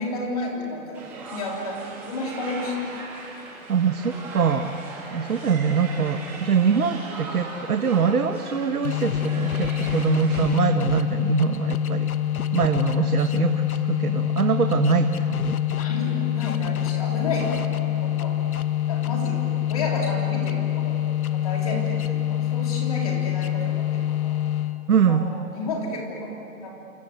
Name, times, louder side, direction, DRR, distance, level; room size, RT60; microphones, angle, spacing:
voice 1, 0.0-3.0 13.0-13.1 15.8-18.4 18.9-21.0 21.3-24.5 25.1-26.7, left 2 dB, 25° left, -1 dB, 3.6 m, -32 dB
sound 1, 0.9-10.4, right 3 dB, 5° right, 1.6 m, -39 dB
voice 2, 3.7-4.7 5.1-12.1 12.5-15.6 24.9-25.3, right 6 dB, 85° right, 7 dB, 1.6 m, -23 dB
sound 2, 8.8-25.0, left 12 dB, 75° left, 1.3 m, -25 dB
27.5 x 26.5 x 8.2 m, 2.6 s
hypercardioid pair, 180°, 43 cm